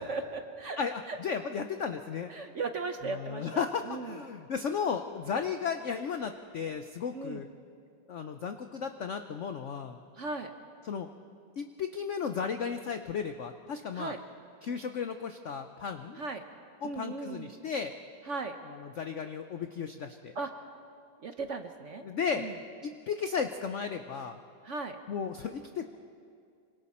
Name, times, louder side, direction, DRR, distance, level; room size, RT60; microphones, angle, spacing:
voice 1, 0.0-0.8 1.1-1.2 2.3-4.2 7.1-7.4 10.1-10.5 13.9-14.2 16.2-16.4 16.8-17.5 18.3-18.6 20.3-20.5 21.2-22.1 22.3-22.6 24.6-25.0, right 3 dB, 55° right, 6 dB, 0.9 m, -37 dB
voice 2, 0.8-2.3 3.1-7.5 8.1-10.0 10.8-11.1 11.6-14.1 14.6-16.2 16.8-17.9 18.7-20.3 22.0-22.5 22.8-24.4 25.1-25.8, left 6 dB, 75° left, 7 dB, 0.6 m, -34 dB
26.5 x 25.0 x 4.3 m, 2.4 s
omnidirectional pair, 2.1 m